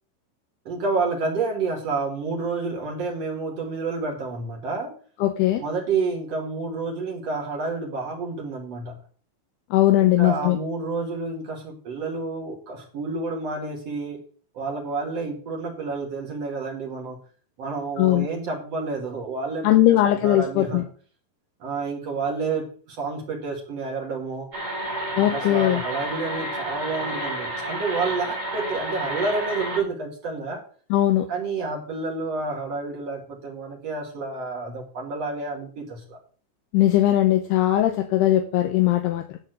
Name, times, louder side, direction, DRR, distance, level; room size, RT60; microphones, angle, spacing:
voice 1, 0.6-4.9 5.6-9.0 10.0-14.2 14.5-17.2 17.6-20.0 20.2-20.8 21.6-24.5 25.1-30.6 31.3-36.2, right 4 dB, 60° right, 0 dB, 1.6 m, -29 dB
voice 2, 5.2-5.6 9.7-10.6 18.0-18.3 19.6-20.8 25.2-25.8 30.9-31.3 36.7-39.4, left 14 dB, 75° left, 6 dB, 2.5 m, -19 dB
sound 1, 24.5-29.8, right 1 dB, 25° right, 1.7 m, -30 dB
11.0 x 4.1 x 7.7 m, 0.43 s
omnidirectional pair, 5.4 m